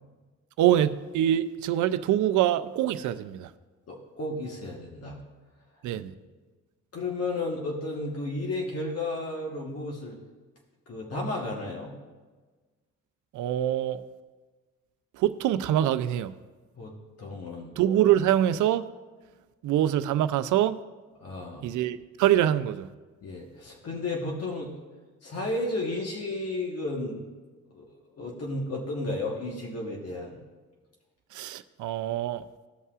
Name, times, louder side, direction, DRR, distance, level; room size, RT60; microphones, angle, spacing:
voice 1, 0.6-3.5 5.8-6.1 13.3-14.0 15.1-16.3 17.8-18.9 19.6-20.8 21.6-22.9 31.3-32.4, right 11 dB, 75° right, 0.5 m, -24 dB
voice 2, 3.9-5.2 6.9-10.2 10.9-11.9 16.8-17.7 21.2-21.7 23.2-24.7 25.2-27.3 27.7-27.9 28.2-30.4, left 2 dB, 55° left, 1.3 m, -33 dB
16.0 x 5.5 x 2.4 m
cardioid pair, 90°, 30 cm